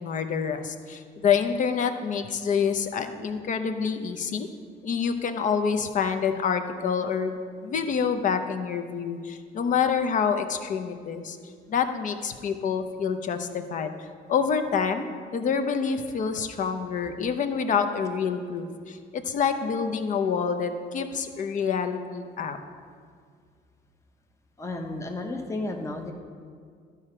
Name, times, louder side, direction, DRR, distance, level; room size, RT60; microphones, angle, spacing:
voice 1, 0.0-4.5 4.8-7.4 7.6-11.4 11.7-13.9 14.3-15.0 15.3-22.6, left 6 dB, 50° left, 7 dB, 0.7 m, -27 dB
voice 2, 24.6-26.1, left 2 dB, 15° left, 3 dB, 0.8 m, -33 dB
12.0 x 4.9 x 4.4 m, 2.1 s
cardioid pair, 110°, 17 cm